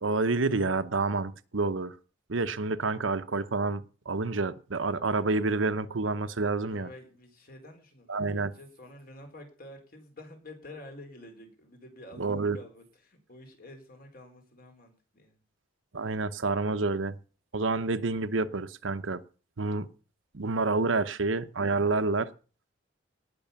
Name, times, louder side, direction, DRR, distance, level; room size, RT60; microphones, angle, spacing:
voice 1, 0.0-1.9 2.3-6.9 8.1-8.5 12.2-12.6 15.9-17.2 17.5-19.2 19.6-19.9 20.3-22.3, right 3 dB, 90° right, 0.9 m, -28 dB
voice 2, 6.6-15.4 21.9-22.2, left 1 dB, 50° left, 4.1 m, -49 dB
18.0 x 6.2 x 7.0 m
head